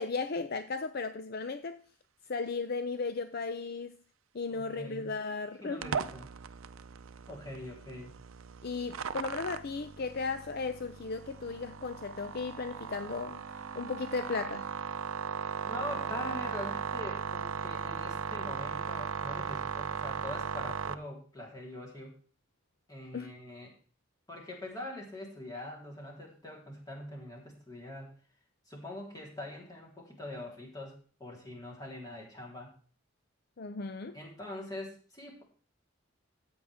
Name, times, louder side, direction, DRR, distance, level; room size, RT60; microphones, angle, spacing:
voice 1, 0.0-1.8 2.3-4.0 4.3-5.8 8.6-14.7 23.1-23.3 33.6-34.2, left 4 dB, 50° left, 0.5 m, -36 dB
voice 2, 4.5-5.1 5.6-6.3 7.3-8.1 15.6-22.2 22.9-23.7 24.3-28.1 28.7-32.7 34.1-35.4, left 1 dB, 20° left, 3.8 m, -43 dB
sound 1, 5.8-20.9, right 6 dB, 85° right, 0.6 m, -37 dB
14.0 x 8.7 x 3.6 m
head